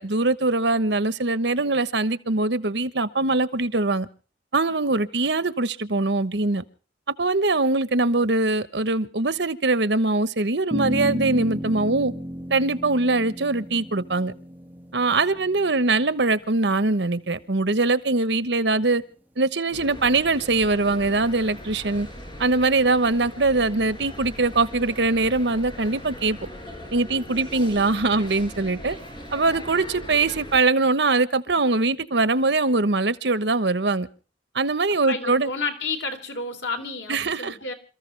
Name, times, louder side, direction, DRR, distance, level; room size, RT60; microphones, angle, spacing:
voice 1, 0.0-4.1 4.5-6.6 7.2-12.1 12.5-14.3 14.9-19.0 19.4-22.1 22.4-26.4 26.9-29.0 29.3-34.1 34.5-35.5 37.1-37.6, right 3 dB, 70° right, 1.2 m, -22 dB
sound 1, 10.7-17.3, equal, 10° right, 1.7 m, -33 dB
sound 2, 19.7-30.6, equal, 30° left, 5.5 m, -40 dB
voice 2, 35.1-37.7, left 3 dB, 90° left, 3.7 m, -31 dB
28.0 x 14.5 x 3.4 m
head